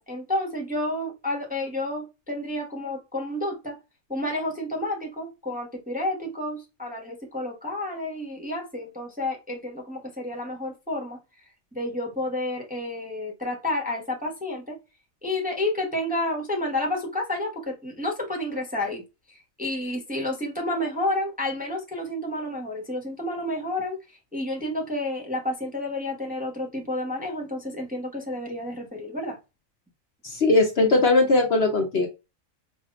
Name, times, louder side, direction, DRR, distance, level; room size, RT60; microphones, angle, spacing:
voice 1, 0.0-3.8 4.1-11.2 11.7-14.8 15.2-19.0 19.3-29.4, left 1 dB, 5° right, 0.9 m, -30 dB
voice 2, 30.2-32.1, left 2 dB, 50° left, 1.0 m, -20 dB
5.0 x 2.9 x 2.4 m
omnidirectional pair, 1.5 m